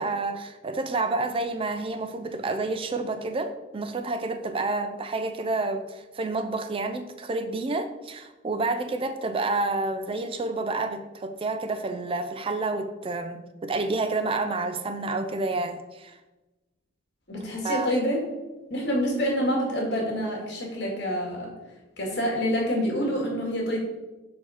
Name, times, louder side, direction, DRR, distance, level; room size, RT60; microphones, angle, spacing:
voice 1, 0.0-16.2 17.4-17.9, right 3 dB, 30° right, 9 dB, 0.4 m, -29 dB
voice 2, 17.3-18.3 18.7-21.5 22.0-23.8, equal, 65° left, -1 dB, 2.0 m, -27 dB
4.6 x 4.6 x 5.5 m, 1.1 s
head